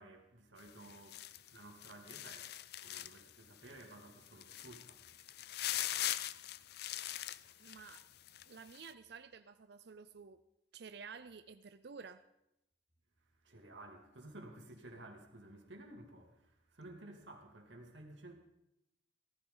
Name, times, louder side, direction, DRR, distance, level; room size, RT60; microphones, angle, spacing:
voice 1, 0.0-6.8 7.1-7.7 13.3-18.3, right 2 dB, 85° right, 2.6 m, -55 dB
sound 1, 0.6-3.3 3.7-3.8 4.3-8.4 8.7-8.9, left 13 dB, 60° left, 0.4 m, -41 dB
voice 2, 7.6-8.1 8.5-10.4 10.7-12.2, right 5 dB, 60° right, 0.5 m, -52 dB
18.0 x 14.5 x 3.9 m
head